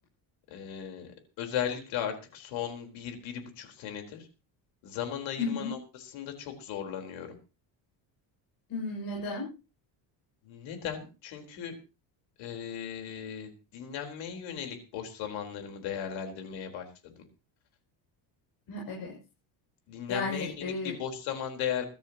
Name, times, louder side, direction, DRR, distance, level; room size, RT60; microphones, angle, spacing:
voice 1, 0.5-1.1 1.4-4.3 4.8-7.3 10.4-11.7 12.4-17.2 19.9-21.9, left 9 dB, 85° left, 5 dB, 4.3 m, -37 dB
voice 2, 5.4-5.7 8.7-9.4 18.7-19.2 20.1-20.9, left 3 dB, 50° left, -2 dB, 6.7 m, -33 dB
22.0 x 13.5 x 3.0 m, 0.31 s
cardioid pair, 150°, 45 cm